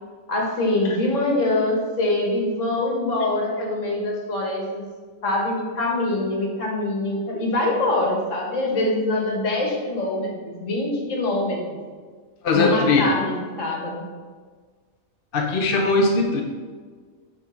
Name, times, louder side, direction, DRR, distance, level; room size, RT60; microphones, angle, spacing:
voice 1, 0.3-4.8 5.2-11.8 12.5-14.1, left 2 dB, 60° left, -1 dB, 2.0 m, -24 dB
voice 2, 12.4-13.0 15.3-16.4, left 3 dB, 45° left, 2 dB, 0.9 m, -20 dB
9.1 x 4.6 x 5.9 m, 1.6 s
omnidirectional pair, 1.5 m